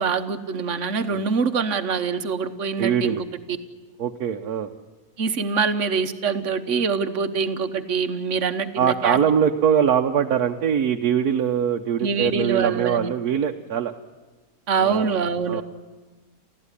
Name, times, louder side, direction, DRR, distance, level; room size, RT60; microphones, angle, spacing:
voice 1, 0.0-3.3 5.2-9.2 12.0-13.1 14.7-15.6, right 5 dB, 55° right, 10 dB, 1.4 m, -24 dB
voice 2, 2.8-3.2 4.0-4.7 8.8-13.9 14.8-15.1 15.5-15.6, right 8 dB, 75° right, 3 dB, 1.4 m, -22 dB
28.5 x 14.5 x 9.8 m, 1.3 s
omnidirectional pair, 1.6 m